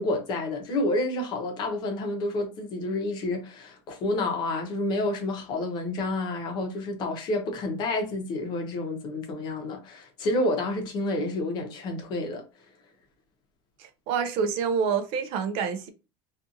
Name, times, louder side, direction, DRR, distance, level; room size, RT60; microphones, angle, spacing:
voice 1, 0.0-12.4, left 2 dB, 40° left, 0.7 m, -29 dB
voice 2, 13.8-15.9, right 6 dB, 55° right, 0.5 m, -27 dB
2.6 x 2.4 x 2.6 m
cardioid pair, 155°, 11 cm